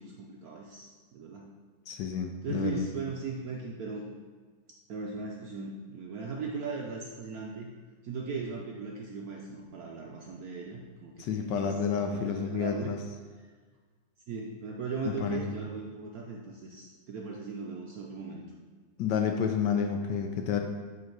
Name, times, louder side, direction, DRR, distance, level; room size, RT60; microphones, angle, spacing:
voice 1, 0.0-1.5 2.4-4.1 4.9-7.7 8.0-11.7 12.0-12.9 14.3-18.4, right 4 dB, 70° right, -1 dB, 0.9 m, -38 dB
voice 2, 1.9-2.9 11.2-13.0 15.1-15.5 19.0-20.6, left 7 dB, 75° left, 4 dB, 1.1 m, -30 dB
7.7 x 3.9 x 4.5 m, 1.5 s
omnidirectional pair, 2.2 m